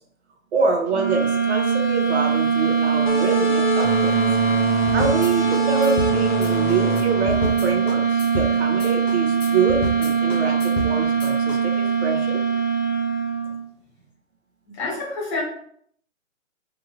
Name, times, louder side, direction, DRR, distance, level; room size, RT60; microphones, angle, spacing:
voice 1, 0.5-4.1 4.9-12.4, right 4 dB, 55° right, 2 dB, 0.9 m, -26 dB
sound 1, 0.9-13.6, right 6 dB, 35° right, 1.0 m, -21 dB
sound 2, 3.1-8.3, left 4 dB, 40° left, 0.4 m, -28 dB
sound 3, 4.9-11.6, left 1 dB, 75° left, 0.7 m, -31 dB
voice 2, 14.6-15.4, left 3 dB, 25° left, -4 dB, 1.1 m, -28 dB
2.8 x 2.6 x 2.6 m, 0.65 s
hypercardioid pair, 150°, 39 cm